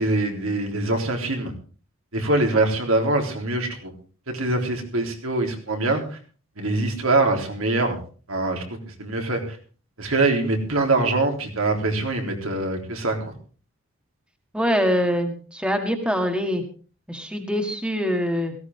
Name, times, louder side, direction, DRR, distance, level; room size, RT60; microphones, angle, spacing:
voice 1, 0.0-1.5 2.1-3.9 4.3-6.0 6.6-8.0 8.3-8.6 9.0-9.4 10.0-13.3, right 2 dB, 85° right, 2 dB, 3.8 m, -23 dB
voice 2, 14.5-16.6 17.1-18.5, equal, 5° right, 5 dB, 1.8 m, -24 dB
17.5 x 15.5 x 3.7 m, 0.38 s
head